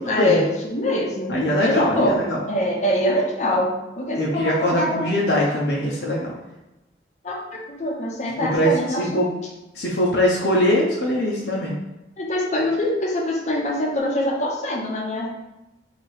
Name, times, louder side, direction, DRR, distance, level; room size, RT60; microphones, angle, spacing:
voice 1, 0.0-1.3 1.6-2.2 2.5-3.7 4.0-5.2 7.2-9.2 12.2-15.3, left 1 dB, 40° left, -2 dB, 0.8 m, -24 dB
voice 2, 1.3-2.4 4.1-6.3 8.4-9.3 9.7-11.7, equal, 75° left, -4 dB, 0.7 m, -22 dB
3.2 x 2.9 x 4.4 m, 0.98 s
head